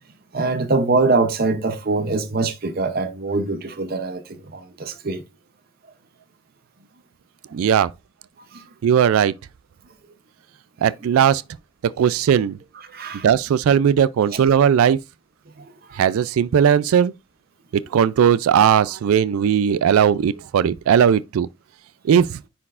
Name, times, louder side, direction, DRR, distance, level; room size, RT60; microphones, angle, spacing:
voice 1, 0.3-5.2 8.5-8.6 10.8-10.9 12.9-13.3 14.3-14.4 15.6-16.0, right 3 dB, 45° right, 0.7 m, -23 dB
voice 2, 7.5-7.9 8.8-9.3 10.8-11.4 12.0-12.6 13.2-15.0 16.0-17.1 17.7-21.5 22.0-22.3, right 8 dB, 80° right, 0.3 m, -17 dB
9.6 x 4.3 x 2.4 m
head